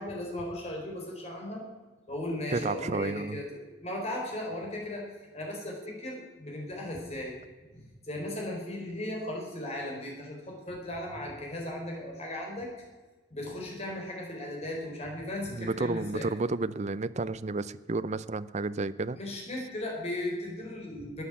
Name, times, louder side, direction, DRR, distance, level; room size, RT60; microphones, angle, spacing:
voice 1, 0.0-1.6 2.1-5.1 5.3-7.3 7.7-12.7 13.3-16.3 19.1-21.2, left 1 dB, 35° left, -1 dB, 4.4 m, -37 dB
voice 2, 2.5-3.4 15.5-19.2, right 3 dB, 40° right, 15 dB, 0.5 m, -31 dB
13.0 x 9.4 x 8.3 m, 1.2 s
head